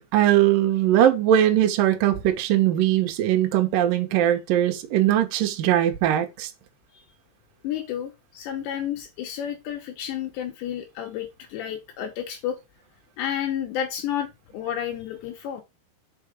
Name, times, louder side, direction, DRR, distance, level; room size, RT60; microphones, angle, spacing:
voice 1, 0.0-6.5, right 11 dB, 80° right, 2.0 m, -20 dB
voice 2, 7.6-12.6 13.2-14.3 14.5-15.6, left 10 dB, 75° left, 2.7 m, -31 dB
5.8 x 5.4 x 5.0 m
omnidirectional pair, 5.8 m